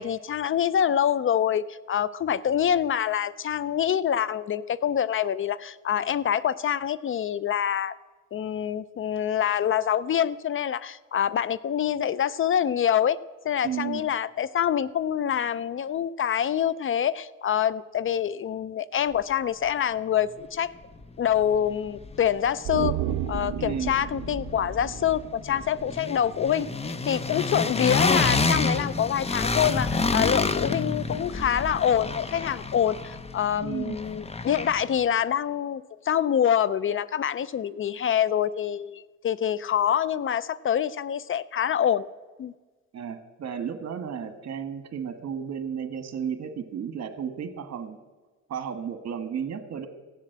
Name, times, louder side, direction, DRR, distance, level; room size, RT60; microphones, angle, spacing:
voice 1, 0.0-7.9 8.3-13.2 13.4-20.7 21.2-23.0 23.3-42.1 42.4-42.5, left 9 dB, 45° left, 19 dB, 0.4 m, -26 dB
voice 2, 13.6-14.1 23.6-24.0 33.6-34.0 42.9-48.0 48.5-49.9, right 8 dB, 60° right, 9 dB, 1.5 m, -33 dB
sound 1, 21.0-21.1 21.4-22.5 22.8-35.0, left 3 dB, 20° left, 0.8 m, -29 dB
sound 2, 22.6-26.0 26.3-26.4, right 17 dB, 80° right, 0.5 m, -33 dB
16.0 x 7.4 x 7.8 m, 1.3 s
cardioid pair, 90°, 30 cm